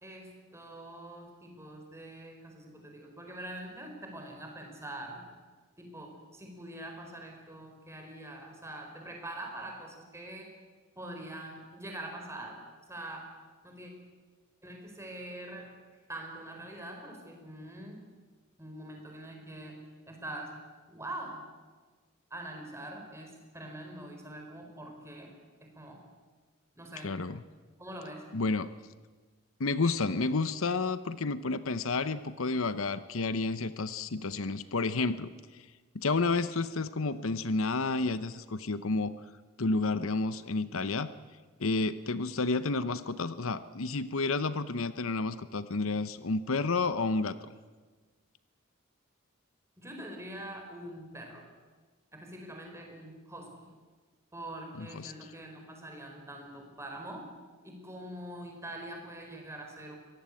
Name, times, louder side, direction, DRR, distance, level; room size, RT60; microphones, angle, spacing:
voice 1, 0.0-5.2 5.8-10.5 11.0-12.6 12.9-13.4 13.6-13.9 14.6-15.7 16.1-18.0 18.6-20.6 20.9-21.5 22.3-25.3 25.6-26.1 26.8-27.2 27.8-28.3 49.8-51.5 52.1-53.7 54.3-57.3 57.6-60.0, right 1 dB, 15° right, 2 dB, 4.7 m, -44 dB
voice 2, 27.0-27.4 28.3-28.7 29.6-35.3 35.9-39.1 39.6-41.1 41.6-47.5 54.7-55.3, left 3 dB, 70° left, 13 dB, 0.8 m, -30 dB
23.5 x 18.5 x 8.5 m, 1.4 s
head